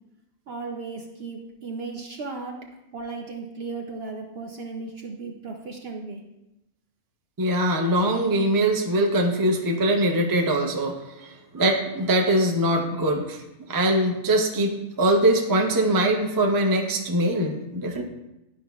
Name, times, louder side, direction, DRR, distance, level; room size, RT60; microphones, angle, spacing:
voice 1, 0.5-2.6 2.9-6.2 9.2-9.9, right 4 dB, 55° right, 1 dB, 0.7 m, -36 dB
voice 2, 7.4-13.4 13.7-18.0, right 1 dB, 25° right, 1 dB, 0.4 m, -22 dB
11.0 x 5.2 x 2.3 m, 0.92 s
omnidirectional pair, 1.5 m